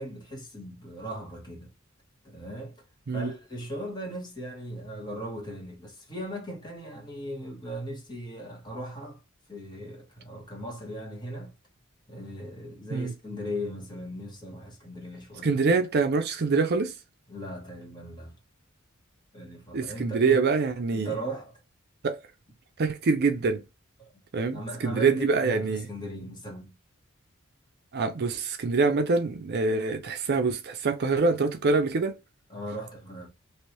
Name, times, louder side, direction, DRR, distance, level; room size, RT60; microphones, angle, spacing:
voice 1, 0.0-1.7 2.2-2.8 3.1-9.2 9.5-11.5 12.1-15.6 17.3-18.3 19.3-20.4 20.9-21.5 24.0-24.1 24.5-26.7 32.5-33.3, equal, 20° left, 1.4 m, -38 dB
voice 2, 15.4-16.9 19.7-21.1 22.0-22.2 22.8-23.6 24.3-25.9 27.9-32.2, right 4 dB, 50° right, 0.5 m, -25 dB
3.3 x 2.6 x 2.9 m
head